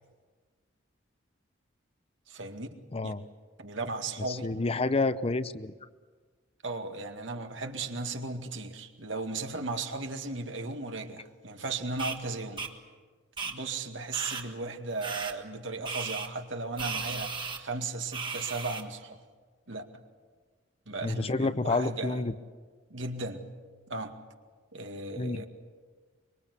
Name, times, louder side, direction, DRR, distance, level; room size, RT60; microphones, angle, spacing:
voice 1, 2.3-2.7 3.0-3.1 3.6-4.5 6.6-12.7 13.4-19.2 19.7-19.8 20.9-22.2 22.9-23.5 23.9-24.1 24.7-25.5, right 3 dB, 75° right, 5 dB, 2.1 m, -36 dB
voice 2, 2.9-3.3 4.3-5.7 21.0-22.3 25.2-25.4, left 3 dB, 30° left, 13 dB, 0.7 m, -29 dB
sound 1, 12.0-12.2 12.6-12.7 13.4-13.5 14.1-14.4 15.0-15.3 15.8-16.3 16.8-17.6 18.1-18.8, right 5 dB, 25° right, 1.7 m, -35 dB
24.5 x 23.0 x 8.3 m, 1.5 s
head